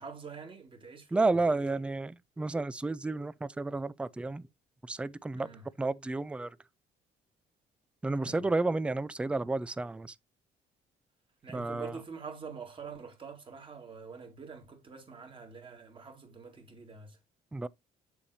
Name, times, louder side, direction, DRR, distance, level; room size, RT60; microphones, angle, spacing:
voice 1, 0.0-1.2 5.4-5.7 8.2-8.4 11.4-17.2, right 5 dB, 30° right, 2.0 m, -46 dB
voice 2, 1.1-4.5 4.9-5.5 5.8-6.6 8.0-10.1 11.5-11.9 17.5-17.7, right 3 dB, 5° right, 0.3 m, -31 dB
7.3 x 7.0 x 2.6 m
cardioid pair, 110°, 17 cm